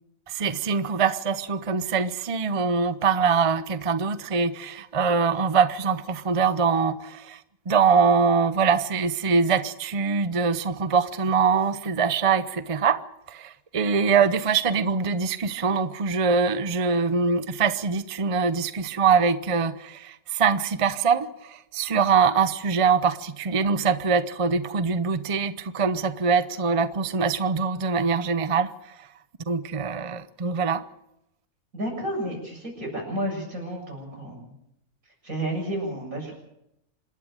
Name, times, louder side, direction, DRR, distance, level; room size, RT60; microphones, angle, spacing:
voice 1, 0.3-7.4 7.7-13.0 13.3-28.7 29.5-30.8, right 5 dB, 30° right, 0.7 m, -23 dB
voice 2, 31.7-34.5 35.2-36.3, right 1 dB, 90° right, 7.9 m, -31 dB
26.5 x 12.0 x 8.9 m
omnidirectional pair, 1.4 m